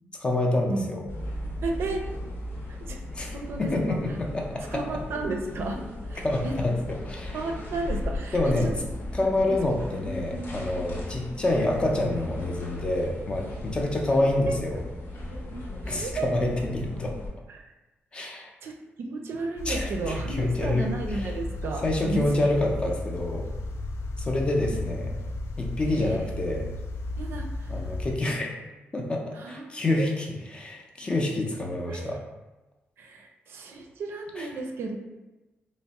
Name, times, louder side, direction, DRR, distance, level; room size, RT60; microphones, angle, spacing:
voice 1, 0.2-1.0 3.1-4.6 6.2-7.4 8.3-8.7 9.1-14.8 15.9-17.1 18.1-18.5 19.7-21.3 21.8-23.5 24.2-25.1 25.6-26.7 27.7-28.5 28.9-32.2 34.4-34.5, left 2 dB, 25° left, 1 dB, 0.4 m, -27 dB
sound 1, 1.1-17.3, left 1 dB, 55° left, 0.7 m, -36 dB
voice 2, 1.6-2.1 2.7-3.0 3.3-4.0 4.7-5.8 6.1-6.5 7.3-8.4 9.5-9.6 14.1-14.6 15.8-16.3 17.5-17.7 18.6-22.2 22.9-23.0 25.9-26.2 27.2-27.8 29.3-30.1 31.9-32.2 33.0-35.0, right 3 dB, 70° right, 2 dB, 0.5 m, -33 dB
sound 2, 19.6-28.2, left 2 dB, 85° left, 0.3 m, -34 dB
3.4 x 2.0 x 4.0 m, 1.1 s
wide cardioid pair, 165°, 4 cm